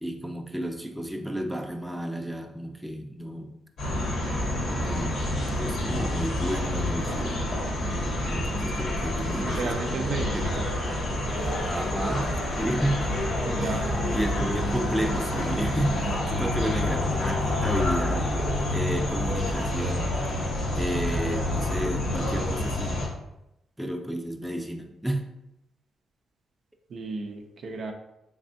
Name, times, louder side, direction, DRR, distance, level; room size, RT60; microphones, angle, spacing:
voice 1, 0.0-3.5 4.8-7.4 8.3-9.7 10.3-10.5 11.6-13.1 13.6-18.3 18.7-20.1 20.7-23.0 23.8-25.3, right 1 dB, 5° right, 3 dB, 0.5 m, -31 dB
sound 1, 3.8-23.1, left 1 dB, 80° left, 1.1 m, -28 dB
voice 2, 8.3-8.7 9.3-10.7 13.5-14.5 26.9-27.9, right 3 dB, 65° right, 2 dB, 0.5 m, -34 dB
sound 2, 11.3-20.5, left 2 dB, 55° left, 0.6 m, -38 dB
3.4 x 3.3 x 2.6 m, 0.85 s
supercardioid pair, 55°, 0 cm